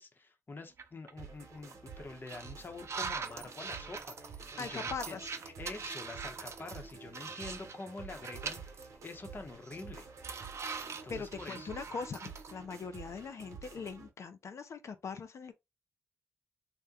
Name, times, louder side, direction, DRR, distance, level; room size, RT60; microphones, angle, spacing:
voice 1, 0.0-5.2 5.4-10.1 11.0-11.7, left 3 dB, 40° left, 0.8 m, -46 dB
sound 1, 0.8-1.1 1.6-1.7 2.3-7.8 8.1-8.9 9.2-9.3 9.6-12.5, right 5 dB, 60° right, 0.5 m, -42 dB
sound 2, 1.2-14.1, right 5 dB, 80° right, 0.9 m, -50 dB
voice 2, 4.6-5.3 11.1-15.5, left 5 dB, 65° left, 0.4 m, -41 dB
2.8 x 2.1 x 3.6 m
cardioid pair, 75°, 5 cm